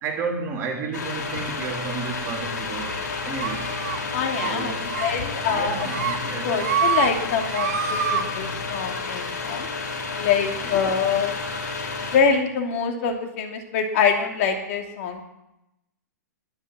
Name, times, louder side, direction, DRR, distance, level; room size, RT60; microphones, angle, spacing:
voice 1, 0.0-3.7 4.4-4.9 5.4-6.6 10.6-10.8, right 4 dB, 30° right, 3.4 m, -32 dB
sound 1, 0.9-12.2, left 4 dB, 90° left, 4.7 m, -31 dB
sound 2, 3.4-4.0 4.3-4.5 4.9-5.1 5.4-6.2 6.5-7.1 7.4-8.2, right 7 dB, 60° right, 2.0 m, -26 dB
voice 2, 4.1-5.8 6.0-9.7 10.2-11.3 12.1-15.2, left 6 dB, 50° left, 2.9 m, -25 dB
21.5 x 7.3 x 7.6 m
hypercardioid pair, 145°, 9 cm